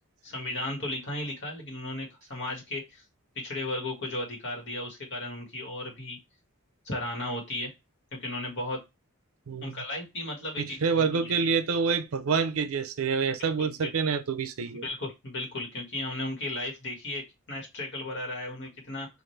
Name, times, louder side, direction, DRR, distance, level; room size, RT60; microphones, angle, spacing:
voice 1, 0.2-3.0 3.3-6.2 6.8-7.7 8.1-8.8 9.6-11.5 13.4-13.9 14.7-19.1, left 1 dB, 55° left, 1.7 m, -35 dB
voice 2, 9.5-9.8 10.6-14.9, right 5 dB, 70° right, 0.5 m, -27 dB
5.1 x 2.6 x 3.2 m
head